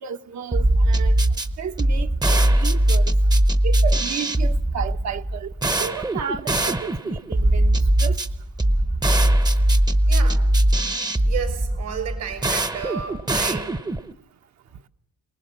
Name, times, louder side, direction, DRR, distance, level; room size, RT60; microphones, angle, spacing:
voice 1, 0.0-1.2 1.6-3.1 3.6-8.2, right 8 dB, 65° right, 1.2 m, -32 dB
sound 1, 0.5-14.1, right 1 dB, 15° right, 0.8 m, -20 dB
voice 2, 10.1-10.5 11.2-13.8, right 7 dB, 85° right, 5.1 m, -32 dB
23.5 x 19.5 x 7.5 m
cardioid pair, 90°, 30 cm